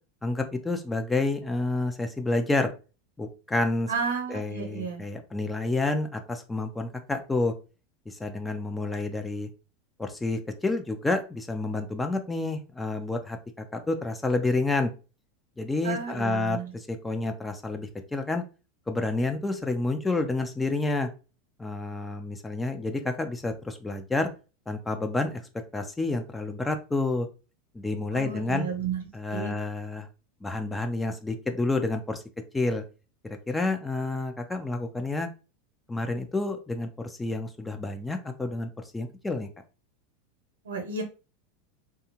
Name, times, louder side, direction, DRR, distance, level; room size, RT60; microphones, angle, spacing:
voice 1, 0.2-2.7 3.2-3.9 4.3-7.5 8.1-9.5 10.0-14.9 15.6-18.4 18.9-21.1 21.6-24.3 24.7-25.4 25.7-27.3 27.7-28.7 29.1-30.1 30.4-32.2 32.5-32.8 33.3-35.3 35.9-39.5, left 2 dB, 10° left, 6 dB, 0.4 m, -29 dB
voice 2, 3.9-5.0 15.8-16.7 28.1-29.5 40.6-41.0, right 5 dB, 80° right, 4 dB, 0.8 m, -32 dB
2.7 x 2.3 x 2.8 m, 0.32 s
hypercardioid pair, 90°, 0 cm